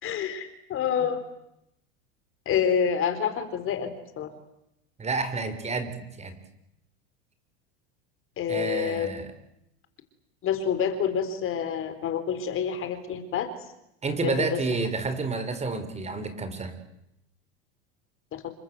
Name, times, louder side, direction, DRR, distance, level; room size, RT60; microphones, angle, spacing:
voice 1, 0.0-1.2 2.5-4.3 8.4-9.1 10.4-13.5 14.2-14.6 18.3-18.4, left 7 dB, 40° left, 10 dB, 4.1 m, -28 dB
voice 2, 5.0-6.4 8.5-9.3 14.0-16.8, right 3 dB, 20° right, 10 dB, 5.0 m, -30 dB
28.5 x 24.5 x 8.0 m, 0.82 s
supercardioid pair, 110°, 33 cm